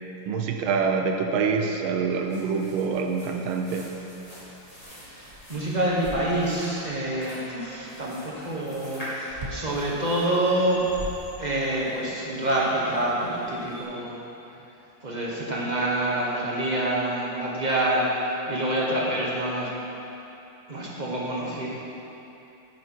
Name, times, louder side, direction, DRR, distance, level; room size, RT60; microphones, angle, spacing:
voice 1, 0.3-3.9, right 5 dB, 75° right, 4 dB, 1.4 m, -26 dB
sound 1, 2.1-13.8, equal, 15° left, 2.5 m, -45 dB
voice 2, 4.9-10.8 11.4-14.2 15.0-19.7 20.7-21.7, right 1 dB, 25° right, -4 dB, 1.1 m, -27 dB
sound 2, 5.2-6.7 9.3-9.8 10.6-11.8, equal, 55° right, 0.5 m, -39 dB
9.3 x 8.7 x 4.5 m, 3.0 s
omnidirectional pair, 2.4 m